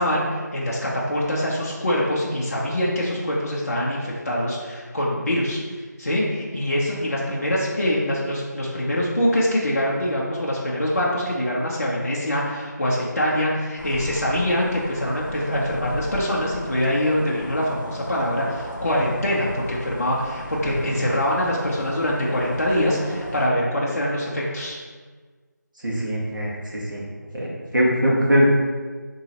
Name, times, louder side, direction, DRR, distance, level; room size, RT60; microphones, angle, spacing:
voice 1, 0.0-5.6 6.0-24.8, equal, 50° left, -5 dB, 0.6 m, -24 dB
sound 1, 13.8-23.5, left 1 dB, 90° left, 0.7 m, -36 dB
voice 2, 20.6-21.0 25.8-27.0 27.3-28.5, equal, 90° right, -5 dB, 1.4 m, -22 dB
4.6 x 3.0 x 2.8 m, 1.5 s
figure-of-eight pair, 175°, 10 cm